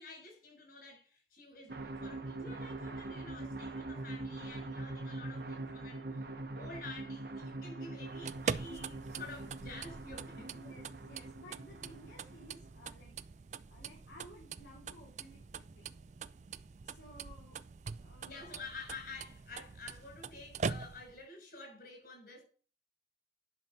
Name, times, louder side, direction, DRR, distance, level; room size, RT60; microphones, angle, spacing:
voice 1, 0.0-10.5 18.2-22.4, left 3 dB, 55° left, 6.3 m, -50 dB
sound 1, 1.7-12.9, right 2 dB, 55° right, 1.1 m, -43 dB
sound 2, 8.1-21.2, right 5 dB, 40° right, 0.4 m, -43 dB
voice 2, 10.5-13.2 13.7-15.9 16.8-17.6 18.0-18.6, equal, 85° left, 4.3 m, -56 dB
11.0 x 6.0 x 5.5 m
head